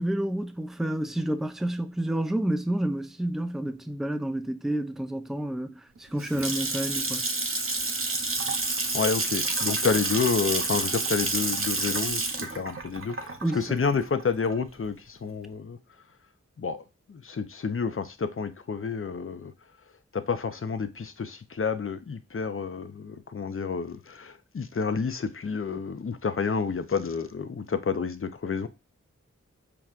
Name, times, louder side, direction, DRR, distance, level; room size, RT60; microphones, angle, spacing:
voice 1, 0.0-7.2 13.4-13.6, right 1 dB, ahead, 0.4 m, -29 dB
Water tap faucet / Sink (filling or washing) / Splash splatter, 6.0-14.8, right 3 dB, 45° right, 0.7 m, -29 dB
voice 2, 8.9-15.8 16.6-16.8 17.1-19.5 20.1-28.7, left 5 dB, 45° left, 0.5 m, -29 dB
5.8 x 2.2 x 2.4 m
wide cardioid pair, 45°, 29 cm